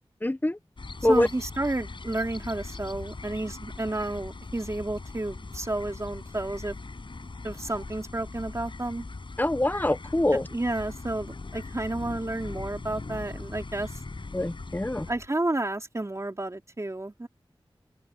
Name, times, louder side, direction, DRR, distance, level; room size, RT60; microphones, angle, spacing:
voice 1, 0.2-0.6 1.0-1.3 9.4-10.5 14.3-15.1, left 1 dB, 20° left, 1.0 m, -24 dB
sound 1, 0.8-15.1, left 3 dB, 60° left, 5.8 m, -40 dB
voice 2, 1.0-6.7 7.4-9.0 10.3-14.0 15.1-17.3, right 2 dB, 30° right, 3.2 m, -31 dB
sound 2, 2.3-4.0 10.7-15.3, left 4 dB, 80° left, 3.6 m, -47 dB
open air
wide cardioid pair, 55°, 9 cm